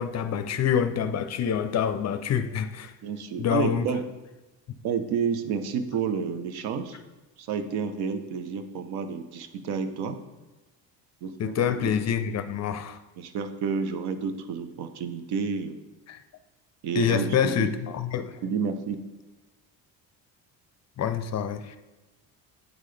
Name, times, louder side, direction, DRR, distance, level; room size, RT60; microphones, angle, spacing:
voice 1, 0.0-2.9 3.4-3.9 11.4-13.0 16.1-16.2 16.9-18.4 21.0-21.8, left 8 dB, 40° left, 9 dB, 0.5 m, -26 dB
voice 2, 3.0-4.0 4.8-7.0 7.4-10.2 11.2-12.0 13.2-15.8 16.8-17.7 18.4-19.0, right 6 dB, 65° right, 9 dB, 0.7 m, -30 dB
9.0 x 3.7 x 3.2 m, 1.1 s
supercardioid pair, 80°, 41 cm